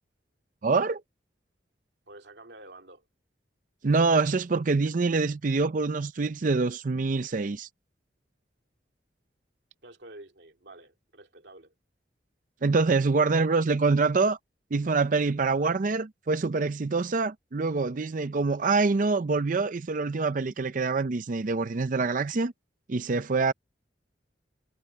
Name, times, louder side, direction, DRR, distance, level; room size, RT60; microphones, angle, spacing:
voice 1, 0.6-1.0 3.8-7.7 12.6-14.4 14.7-22.5 22.9-23.5, right 4 dB, 45° right, 0.5 m, -25 dB
voice 2, 2.1-3.0 9.8-11.7, right 2 dB, 70° right, 2.6 m, -49 dB
head